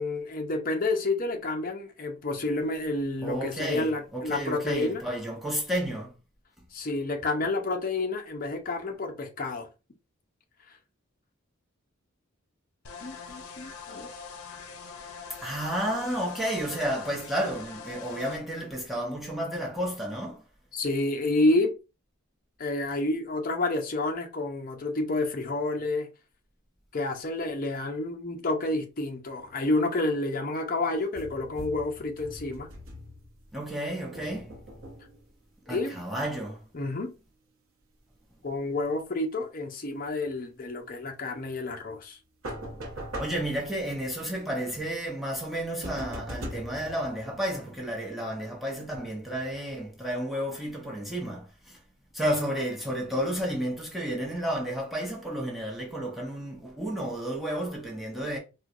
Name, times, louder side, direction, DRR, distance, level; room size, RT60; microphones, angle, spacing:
voice 1, 0.0-5.0 6.7-9.7 13.0-14.1 20.7-21.7 22.6-26.1 26.9-32.7 35.7-36.0 36.7-37.1 38.4-42.2, left 2 dB, 40° left, 0.6 m, -29 dB
voice 2, 3.2-6.1 15.4-20.4 33.5-34.6 35.7-36.6 43.2-51.8 52.1-58.4, equal, ahead, 0.7 m, -32 dB
sound 1, 12.8-18.4, left 5 dB, 90° left, 0.6 m, -43 dB
sound 2, 31.1-33.6 34.1-35.3 42.4-44.1 45.8-47.8, equal, 80° right, 0.9 m, -41 dB
4.4 x 2.2 x 2.5 m
head